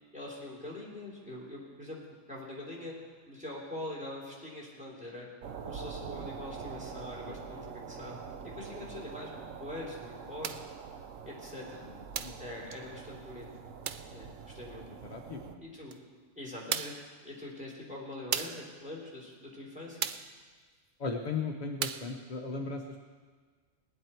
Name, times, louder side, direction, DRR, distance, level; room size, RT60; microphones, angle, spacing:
voice 1, 0.1-2.0 2.3-2.9 3.3-5.3 5.6-8.1 8.5-10.7 11.2-11.8 12.4-13.5 14.1-14.8 15.6-16.0 16.3-17.0 17.2-20.0, left 1 dB, 5° right, -5 dB, 3.4 m, -43 dB
sound 1, 5.4-15.6, right 6 dB, 75° right, 1.2 m, -45 dB
voice 2, 7.3-7.6 12.2-12.4 15.1-15.6 21.0-23.0, left 4 dB, 40° left, 1 dB, 0.9 m, -37 dB
sound 2, 10.4-10.7 12.1-12.5 13.8-14.1 15.9-16.0 16.7-17.1 18.3-18.7 20.0-20.3 21.8-22.1, right 8 dB, 60° right, 0.5 m, -35 dB
19.5 x 10.0 x 4.5 m, 1.5 s
omnidirectional pair, 1.3 m